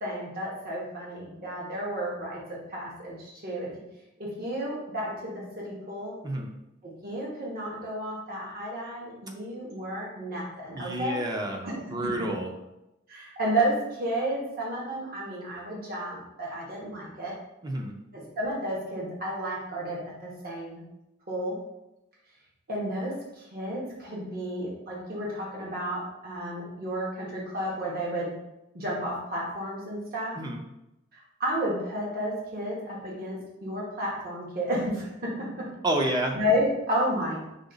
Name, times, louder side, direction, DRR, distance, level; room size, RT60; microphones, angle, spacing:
voice 1, 0.0-3.7 4.2-6.1 7.0-11.2 11.6-12.0 13.1-17.3 18.1-20.8 21.3-21.6 22.7-23.1 23.5-28.3 28.7-30.3 31.1-35.1 36.3-37.4, equal, 50° right, -4 dB, 1.1 m, -32 dB
voice 2, 10.7-12.5 17.6-18.0 30.4-30.6 35.8-36.4, right 1 dB, 20° right, 1 dB, 0.6 m, -29 dB
5.0 x 2.3 x 3.8 m, 0.90 s
head